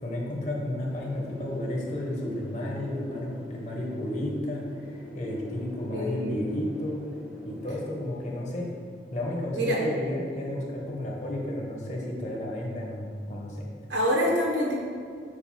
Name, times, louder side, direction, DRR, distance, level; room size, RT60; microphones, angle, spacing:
voice 1, 0.0-7.0 7.4-8.7 9.1-13.7, left 1 dB, 40° left, -2 dB, 1.1 m, -32 dB
Wind, 0.9-9.6, equal, 5° right, 0.7 m, -43 dB
voice 2, 5.9-6.5 9.5-9.8 13.9-14.7, equal, 80° right, -3 dB, 1.4 m, -26 dB
6.6 x 2.6 x 5.6 m, 2.2 s
head